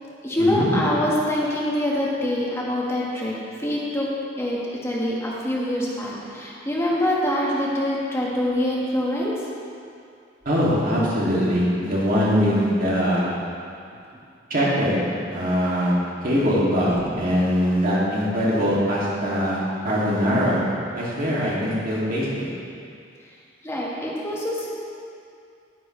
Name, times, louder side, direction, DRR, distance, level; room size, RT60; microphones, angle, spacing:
voice 1, 0.2-4.1 4.4-9.4 10.4-10.6 16.8-17.3 18.6-18.7 23.6-24.7, left 1 dB, 15° left, -5 dB, 1.7 m, -25 dB
voice 2, 10.5-13.2 14.5-14.9 15.3-15.9 16.2-16.9 17.2-19.6 19.8-20.6 20.9-22.5, equal, 50° right, -7 dB, 2.6 m, -22 dB
11.0 x 10.0 x 3.3 m, 2.4 s
head